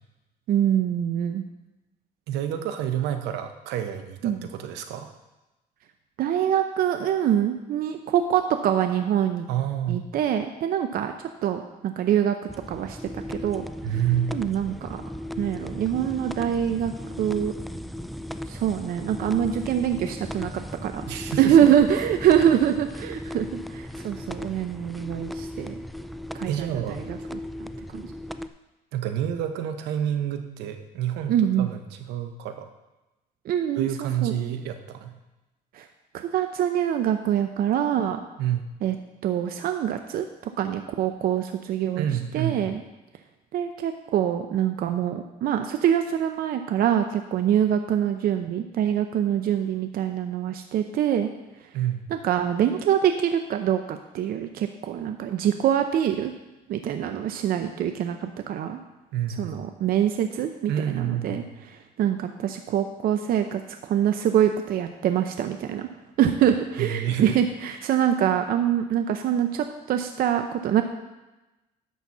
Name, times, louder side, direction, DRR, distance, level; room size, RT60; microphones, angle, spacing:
voice 1, 0.5-1.4 4.2-4.5 6.2-9.5 9.9-11.1 11.4-12.4 12.7-13.7 14.3-15.0 15.4-16.9 17.2-17.5 18.5-20.9 21.4-25.7 26.3-27.2 27.9-28.0 31.3-31.7 33.5-34.3 35.7-35.9 36.1-38.2 38.8-38.9 39.2-40.3 40.6-42.1 42.3-42.8 43.5-51.3 52.2-56.3 56.7-58.8 59.4-61.4 61.7-65.9 66.2-70.8, right 10 dB, 60° right, 7 dB, 0.6 m, -24 dB
voice 2, 2.3-5.1 9.5-10.1 13.8-14.3 21.1-21.7 26.5-27.0 28.9-32.7 33.7-35.1 38.4-38.7 41.9-42.7 51.7-52.1 59.1-59.6 60.7-61.6 66.8-67.4 67.7-67.8, right 10 dB, 85° right, 7 dB, 1.0 m, -29 dB
sound 1, 12.5-28.5, left 1 dB, ahead, 0.3 m, -36 dB
11.0 x 4.2 x 7.2 m, 1.0 s
cardioid pair, 110°, 17 cm